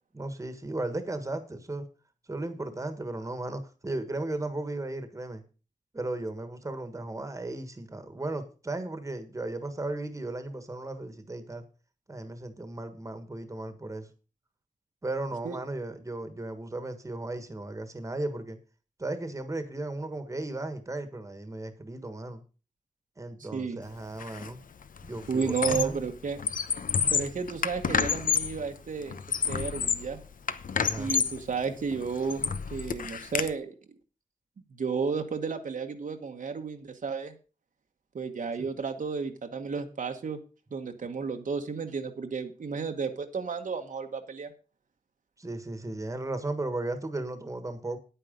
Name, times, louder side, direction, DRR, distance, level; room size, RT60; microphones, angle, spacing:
voice 1, 0.1-1.9 2.3-5.4 5.9-11.6 12.1-14.1 15.0-18.6 19.0-22.4 23.2-24.6 25.0-26.0 30.7-31.1 38.6-38.7 45.4-48.0, right 2 dB, 20° right, 1.4 m, -35 dB
voice 2, 23.5-23.8 25.3-26.4 27.1-29.2 29.5-30.2 31.0-33.7 34.7-37.3 38.1-40.4 40.7-44.5, right 5 dB, 65° right, 1.3 m, -32 dB
Squeak, 24.2-24.5 24.8-26.0 26.4-28.6 29.1-30.1 30.5-31.4 31.9-33.5, left 6 dB, 70° left, 0.8 m, -29 dB
9.6 x 9.1 x 5.2 m
wide cardioid pair, 120°, 14 cm